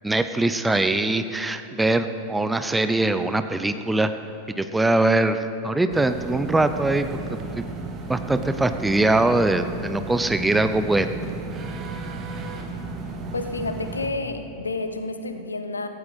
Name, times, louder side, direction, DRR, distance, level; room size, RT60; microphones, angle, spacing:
voice 1, 0.0-4.1 4.6-11.1, right 2 dB, 10° right, 9 dB, 0.6 m, -22 dB
sound 1, 5.9-14.1, right 3 dB, 25° right, 1.6 m, -34 dB
voice 2, 13.3-15.9, left 3 dB, 75° left, 8 dB, 0.9 m, -30 dB
16.5 x 15.5 x 4.1 m, 2.8 s
figure-of-eight pair, 90°, 0 cm